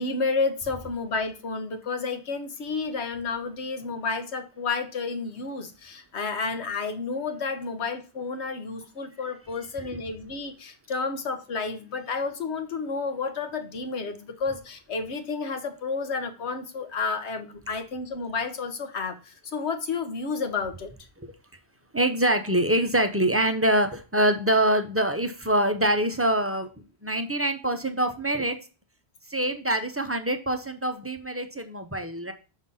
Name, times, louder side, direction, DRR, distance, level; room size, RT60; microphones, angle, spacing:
voice 1, 0.0-20.9, left 4 dB, 80° left, 8 dB, 1.3 m, -31 dB
voice 2, 21.9-26.7 27.0-28.6 29.3-32.3, right 1 dB, 15° right, 7 dB, 0.6 m, -24 dB
6.1 x 3.9 x 5.5 m, 0.34 s
omnidirectional pair, 1.1 m